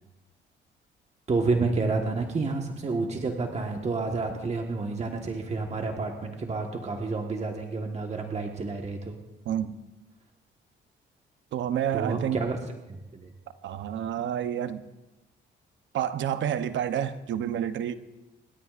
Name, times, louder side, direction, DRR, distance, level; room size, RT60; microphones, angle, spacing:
voice 1, 1.3-9.2 11.9-12.6 12.9-13.3, right 3 dB, 35° right, 1.5 m, -29 dB
voice 2, 11.5-12.5 13.6-14.8 15.9-18.0, right 10 dB, 70° right, 0.9 m, -29 dB
27.5 x 12.5 x 2.5 m
cardioid pair, 90°, 20 cm